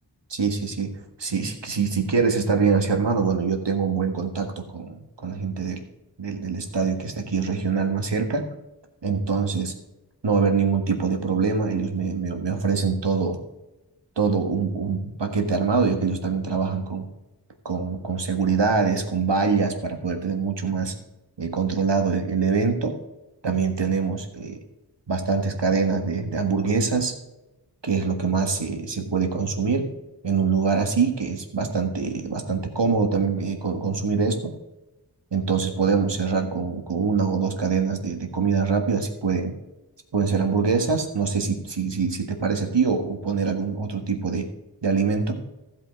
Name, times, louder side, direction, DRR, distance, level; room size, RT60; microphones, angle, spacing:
voice 1, 0.3-5.8 6.2-8.5 9.0-9.7 10.2-13.4 14.2-17.0 17.6-20.9 21.4-23.0 23.4-24.6 25.1-27.1 27.8-29.9 30.2-34.5 35.3-39.5 40.1-44.5 44.8-45.4, right 5 dB, 70° right, 5 dB, 1.7 m, -24 dB
15.0 x 5.5 x 4.7 m, 0.97 s
wide cardioid pair, 45°, 43 cm